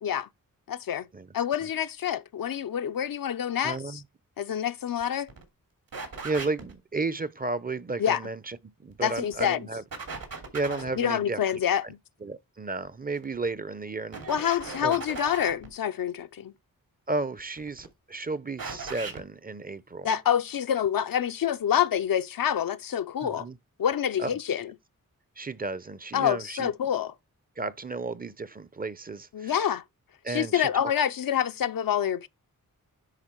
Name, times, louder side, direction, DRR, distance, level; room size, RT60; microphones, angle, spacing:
voice 1, 0.7-1.1 1.3-4.0 4.4-5.3 8.0-8.2 9.0-9.6 11.0-12.0 14.3-16.5 20.0-23.4 23.8-24.7 26.1-27.1 29.3-29.8 30.3-32.3, left 9 dB, 70° left, 0.7 m, -27 dB
voice 2, 3.6-4.0 6.2-9.8 10.5-11.4 12.2-14.2 14.8-15.0 17.1-20.1 23.2-23.6 24.2-24.4 25.4-26.7 27.6-29.6 30.2-30.9, right 3 dB, 25° right, 0.6 m, -33 dB
sound 1, 5.0-5.1 5.3-5.4 5.9-6.7 8.9-9.5 9.9-11.0 13.2-13.5 14.1-15.7 17.4-17.9 18.6-19.2, right 4 dB, 75° right, 2.8 m, -38 dB
10.0 x 3.5 x 4.5 m
cardioid pair, 50°, 35 cm